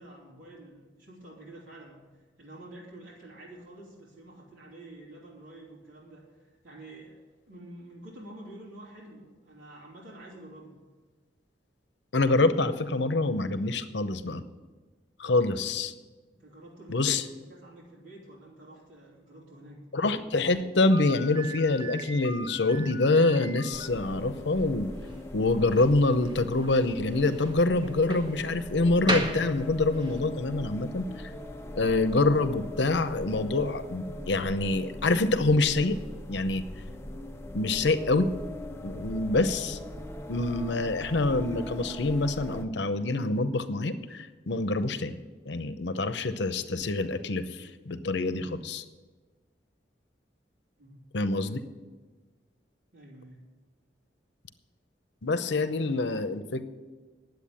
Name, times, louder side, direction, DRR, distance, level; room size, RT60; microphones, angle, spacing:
voice 1, 0.0-7.2 7.5-10.7 16.4-19.8 50.8-51.1 52.9-53.4, right 1 dB, 85° right, -6 dB, 3.4 m, -48 dB
voice 2, 12.1-14.4 15.2-15.9 16.9-17.2 19.9-24.9 25.3-31.3 31.8-36.0 36.3-36.6 37.5-38.3 38.8-39.8 40.3-45.2 45.5-48.8 51.1-51.6 55.2-56.6, left 2 dB, 70° left, 11 dB, 0.8 m, -26 dB
Slam, 20.9-30.2, right 1 dB, 25° right, 1.1 m, -38 dB
sound 1, 23.7-42.6, left 1 dB, 15° left, 0.6 m, -41 dB
10.5 x 8.1 x 8.3 m, 1.3 s
head